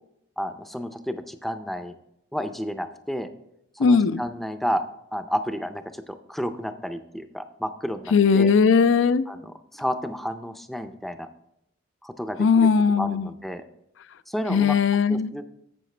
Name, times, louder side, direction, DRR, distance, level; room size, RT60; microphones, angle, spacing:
voice 1, 0.4-2.0 2.3-3.3 3.8-4.8 5.1-8.5 9.3-11.3 12.0-13.6 14.3-14.8 15.1-15.5, equal, ahead, 9 dB, 0.4 m, -31 dB
voice 2, 3.8-4.2 8.1-9.3 12.4-13.3 14.5-15.3, left 5 dB, 75° left, 15 dB, 0.4 m, -19 dB
11.5 x 7.8 x 3.2 m, 0.80 s
head